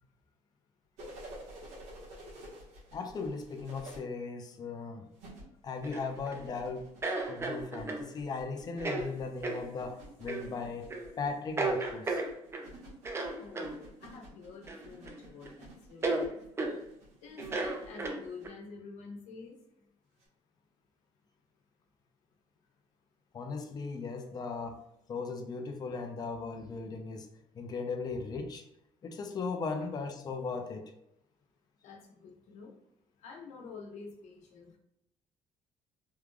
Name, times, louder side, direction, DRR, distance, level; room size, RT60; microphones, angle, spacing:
sound 1, 1.0-4.0 5.1-18.5 20.2-20.3, right 1 dB, 90° right, 1.3 m, -51 dB
voice 1, 2.9-5.1 5.6-6.8 7.3-12.2 23.3-24.8 25.1-27.3 27.5-28.6 29.0-30.8, left 4 dB, 35° left, 4 dB, 0.5 m, -37 dB
sound 2, 5.8-6.4 7.0-8.1 8.8-9.1 9.4-9.6 10.3-10.5 10.9-11.1 11.6-12.7 13.0-13.7 14.7-15.2 15.4-15.5 16.0-16.2 16.6-16.8 17.4-18.5, right 3 dB, 20° right, 0.5 m, -34 dB
voice 2, 13.4-16.4 17.2-19.5 29.8-29.9 31.8-32.7 33.2-34.8, left 4 dB, 85° left, 0 dB, 0.9 m, -48 dB
3.6 x 3.2 x 2.2 m, 0.80 s
cardioid pair, 130°, 12 cm